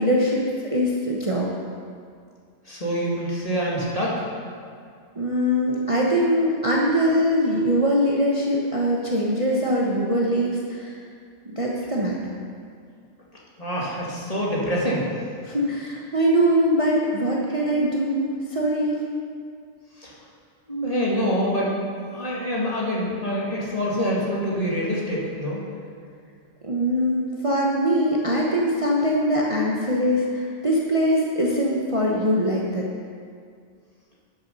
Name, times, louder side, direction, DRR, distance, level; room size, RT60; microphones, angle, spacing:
voice 1, 0.0-1.5 5.1-10.9 11.4-12.2 15.4-19.0 26.6-32.9, equal, 25° right, -4 dB, 1.0 m, -22 dB
voice 2, 2.7-4.3 13.6-15.1 20.0-20.1 20.7-21.7 22.1-25.6, equal, 25° left, -6 dB, 2.2 m, -25 dB
12.0 x 7.2 x 5.4 m, 2.2 s
omnidirectional pair, 1.4 m